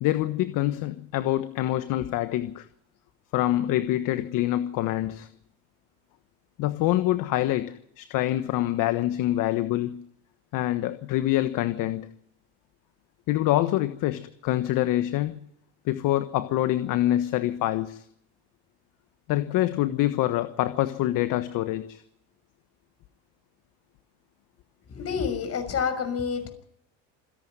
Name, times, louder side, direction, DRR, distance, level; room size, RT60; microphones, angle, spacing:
voice 1, 0.0-2.7 3.3-5.3 6.6-10.0 10.5-12.1 13.3-15.4 15.8-18.0 19.3-22.0, left 14 dB, 60° left, 1.3 m, -25 dB
voice 2, 24.9-26.5, left 6 dB, 40° left, 6.1 m, -28 dB
27.5 x 11.0 x 9.5 m
supercardioid pair, 90°, 37 cm